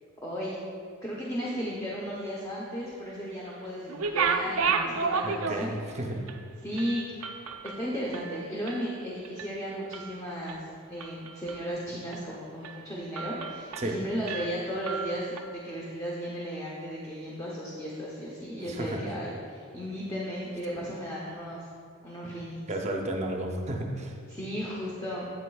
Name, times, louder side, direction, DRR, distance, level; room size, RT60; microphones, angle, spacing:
voice 1, 0.2-0.6 1.0-5.9 6.6-7.0 7.8-15.3 15.6-21.7 22.0-22.6 24.3-25.3, equal, 15° left, -5 dB, 0.7 m, -35 dB
sound 1, 3.9-5.9 6.3-6.4 6.8-8.9 9.2-9.6 9.9-10.6 11.0-11.7 12.1-12.3 12.6-12.8 13.1-14.0 14.3-15.4, right 5 dB, 80° right, 0.5 m, -32 dB
voice 2, 5.2-6.2 13.8-13.9 18.7-19.0 22.7-24.1, right 1 dB, 30° right, 1 dB, 0.6 m, -32 dB
8.2 x 8.1 x 2.3 m, 2.2 s
head